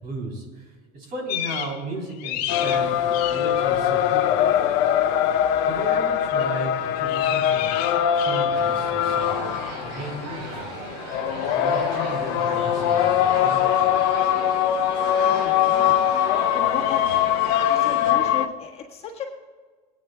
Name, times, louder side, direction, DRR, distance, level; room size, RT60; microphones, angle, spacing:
voice 1, 0.0-0.7 0.9-4.5 5.7-7.9 8.1-9.5 9.8-10.9 11.5-13.6, right 2 dB, 45° right, 1 dB, 3.3 m, -35 dB
sound 1, 1.3-1.8 2.1-3.7 6.2-6.5 7.0-8.7 11.4-11.5 13.4-13.8 16.7-17.8, left 12 dB, 75° left, 1.1 m, -33 dB
sound 2, 2.5-18.5, left 10 dB, 55° left, 0.7 m, -22 dB
sound 3, 8.5-18.1, right 3 dB, 70° right, 4.0 m, -36 dB
voice 2, 15.2-16.0 16.5-17.1 17.6-19.2, left 7 dB, 30° left, -1 dB, 1.5 m, -35 dB
23.5 x 9.2 x 2.3 m, 1.5 s
supercardioid pair, 145°, 21 cm